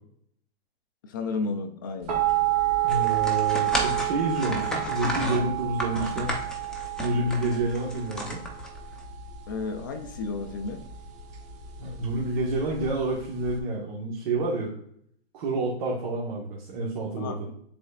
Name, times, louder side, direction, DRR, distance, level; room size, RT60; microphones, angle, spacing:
voice 1, 1.0-2.2 9.5-10.9 17.2-17.5, left 4 dB, 20° left, 7 dB, 0.3 m, -33 dB
sound 1, 2.1-13.6, right 14 dB, 20° right, 1.0 m, -29 dB
voice 2, 2.8-6.3 7.0-8.4 11.8-14.7 15.3-17.5, right 2 dB, 50° right, -3 dB, 1.5 m, -29 dB
sound 2, 2.9-9.0, equal, ahead, 0.7 m, -33 dB
9.6 x 4.2 x 2.4 m, 0.67 s
hypercardioid pair, 140°, 32 cm